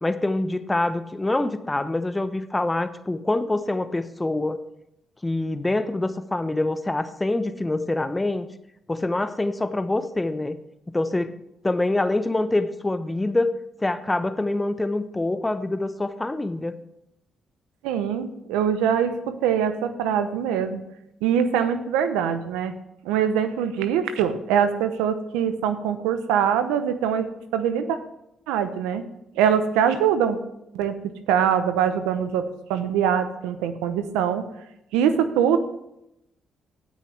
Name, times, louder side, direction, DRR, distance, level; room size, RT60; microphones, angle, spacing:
voice 1, 0.0-4.6 5.2-8.5 8.9-10.6 10.9-11.3 11.6-13.5 13.8-16.8, left 2 dB, 20° left, 11 dB, 0.9 m, -25 dB
voice 2, 17.8-20.8 21.2-22.7 23.0-27.3 27.5-28.0 28.5-29.0 29.3-30.4 30.7-34.4 34.9-35.6, right 8 dB, 90° right, 10 dB, 0.8 m, -23 dB
17.0 x 6.5 x 3.4 m, 0.82 s
supercardioid pair, 55°, 0 cm